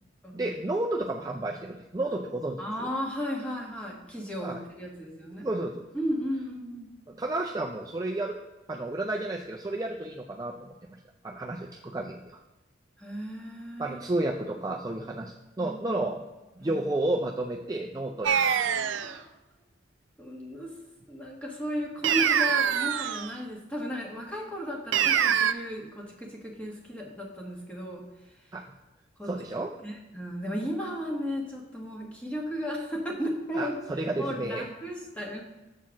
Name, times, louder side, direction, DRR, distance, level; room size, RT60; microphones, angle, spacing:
voice 1, 0.3-2.9 4.4-4.6 5.4-5.8 7.1-8.4 8.7-12.4 13.8-16.2 16.6-18.5 28.5-28.6 29.3-29.7 33.6-34.7, right 2 dB, 20° right, 0 dB, 0.4 m, -32 dB
voice 2, 2.6-5.5 5.9-6.9 13.0-14.0 15.6-16.1 16.6-16.8 18.3-19.3 20.2-20.7 21.1-28.0 29.2-29.3 29.8-33.8 34.2-35.4, equal, 5° left, -2 dB, 1.4 m, -35 dB
sound 1, 18.2-19.2 22.0-23.3 24.9-25.5, right 8 dB, 80° right, 0.4 m, -24 dB
7.2 x 4.4 x 6.0 m, 1.1 s
head